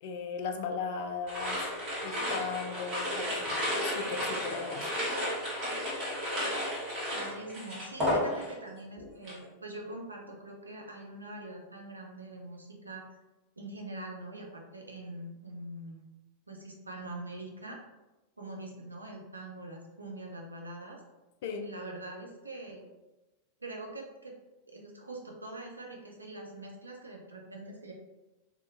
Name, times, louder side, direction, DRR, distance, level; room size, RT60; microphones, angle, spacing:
voice 1, 0.0-1.7 2.0-4.9 21.4-21.7, left 5 dB, 50° left, 5 dB, 0.3 m, -37 dB
sound 1, 1.3-8.7 9.0-9.4, left 1 dB, 35° right, 1.3 m, -33 dB
voice 2, 7.1-13.0 13.6-16.0 16.5-17.8 18.4-21.0 21.6-22.9 23.6-24.3 24.7-27.9, right 2 dB, 80° right, 0 dB, 0.5 m, -43 dB
2.8 x 2.3 x 2.6 m, 1.1 s
figure-of-eight pair, 90°, 0 cm